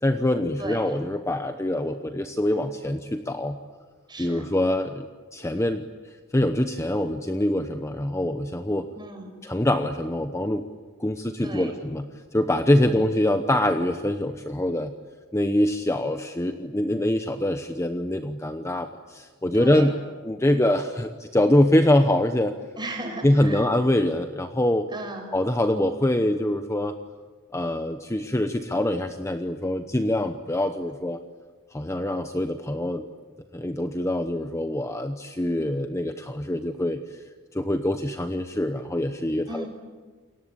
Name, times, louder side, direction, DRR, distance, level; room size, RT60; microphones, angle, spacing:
voice 1, 0.0-3.6 4.2-5.9 6.3-8.9 9.4-10.6 11.0-14.9 15.3-19.9 20.2-22.5 23.2-24.9 25.3-27.0 27.5-31.2 31.7-33.0 33.5-37.2 37.5-39.7, left 1 dB, 15° left, 7 dB, 0.9 m, -24 dB
voice 2, 0.6-0.9 4.1-4.4 9.0-9.3 11.4-11.8 12.9-13.0 19.5-19.9 22.8-23.6 24.9-25.3 39.5-39.7, right 2 dB, 20° right, 3 dB, 6.2 m, -36 dB
28.5 x 23.5 x 8.7 m, 1.5 s
head